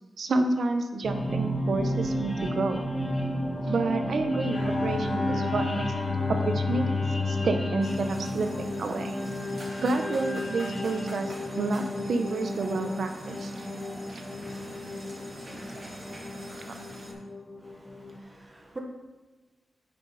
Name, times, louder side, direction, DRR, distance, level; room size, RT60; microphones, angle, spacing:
voice 1, 0.2-2.8 3.7-5.9 6.3-9.2 9.8-13.7 14.1-14.2, right 3 dB, 70° right, 6 dB, 0.9 m, -29 dB
sound 1, 1.0-18.2, left 1 dB, 25° left, 1.4 m, -33 dB
Bowed string instrument, 4.5-9.0, left 4 dB, 80° left, 2.1 m, -31 dB
sound 2, 7.8-17.1, right 1 dB, 40° right, 2.9 m, -44 dB
voice 2, 17.6-18.8, right 2 dB, 25° right, 2 dB, 1.1 m, -45 dB
9.2 x 6.4 x 4.2 m, 1.3 s
wide cardioid pair, 125°, 0 cm